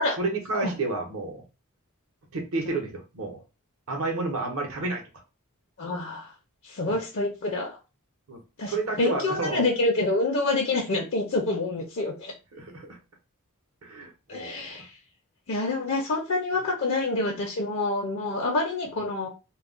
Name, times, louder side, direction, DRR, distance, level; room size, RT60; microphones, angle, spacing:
voice 1, 0.2-1.4 2.3-3.4 3.9-5.0 6.9-7.0 8.3-9.6 12.5-13.0 13.8-14.8, right 3 dB, 70° right, 3 dB, 0.8 m, -31 dB
voice 2, 5.8-6.3 6.6-7.8 8.6-12.3 14.3-14.9 15.5-19.3, left 2 dB, 60° left, -1 dB, 0.5 m, -27 dB
2.3 x 2.1 x 3.6 m, 0.30 s
head